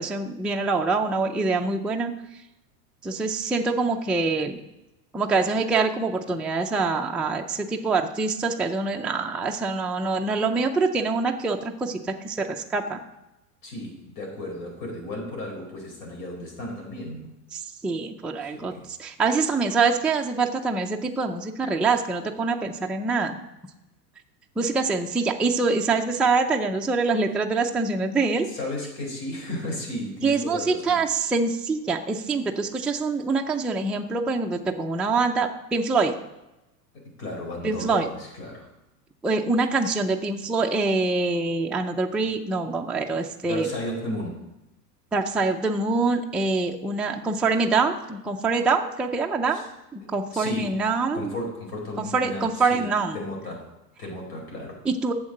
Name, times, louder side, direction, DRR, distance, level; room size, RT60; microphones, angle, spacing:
voice 1, 0.0-2.1 3.0-4.6 5.1-13.0 17.5-23.4 24.6-28.5 30.2-36.1 37.6-38.1 39.2-43.7 45.1-51.3 52.0-53.2 54.9-55.1, right 4 dB, ahead, 1 dB, 0.4 m, -25 dB
voice 2, 13.6-17.3 18.4-18.9 28.4-31.0 36.9-38.7 43.4-44.5 49.5-49.7 50.0-50.8 51.1-52.9 53.1-54.8, left 1 dB, 55° left, 0 dB, 4.4 m, -34 dB
8.4 x 7.3 x 6.5 m, 0.96 s
hypercardioid pair, 105°, 47 cm